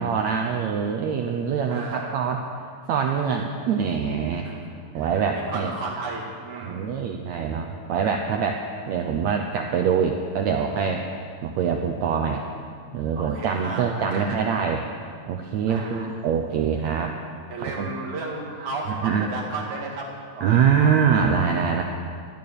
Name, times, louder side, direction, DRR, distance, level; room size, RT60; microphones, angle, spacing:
voice 1, 0.0-2.4 2.9-4.5 4.9-5.7 6.6-8.6 8.9-11.0 11.4-12.4 12.9-14.9 15.3-17.1 17.8-17.9 19.0-19.3 20.4-21.8, right 7 dB, 85° right, 3 dB, 1.6 m, -24 dB
voice 2, 1.7-2.2 4.4-4.6 4.9-5.1 5.3-7.0 13.2-14.6 15.7-16.1 17.5-20.1 20.4-21.0, right 3 dB, 55° right, -3 dB, 3.4 m, -34 dB
13.5 x 11.0 x 6.7 m, 2.1 s
omnidirectional pair, 4.1 m